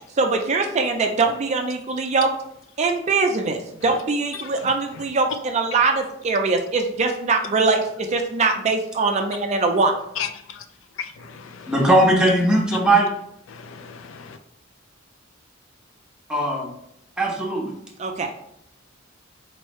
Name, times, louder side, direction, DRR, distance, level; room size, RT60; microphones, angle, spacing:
voice 1, 0.2-2.3 2.8-9.9 18.0-18.3, right 3 dB, 35° right, 4 dB, 0.4 m, -22 dB
voice 2, 10.2-10.6 11.0-11.7 12.7-12.8 13.5-14.4, left 8 dB, 75° left, 8 dB, 0.4 m, -34 dB
voice 3, 11.7-13.1 16.3-16.7 17.2-17.7, right 1 dB, 5° right, -4 dB, 1.0 m, -18 dB
4.4 x 3.2 x 3.1 m, 0.73 s
head